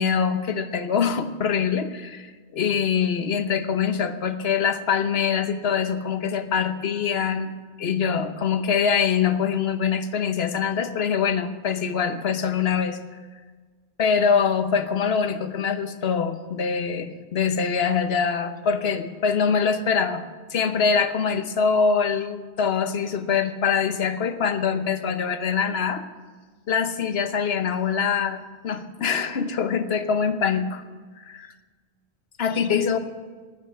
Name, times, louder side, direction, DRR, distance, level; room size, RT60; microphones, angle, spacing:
voice 1, 0.0-7.5 7.8-13.0 14.0-20.2 20.5-26.0 26.7-30.8 31.2-31.5 32.4-33.0, left 6 dB, 75° left, 9 dB, 1.2 m, -24 dB
11.5 x 9.8 x 9.5 m, 1.4 s
omnidirectional pair, 1.0 m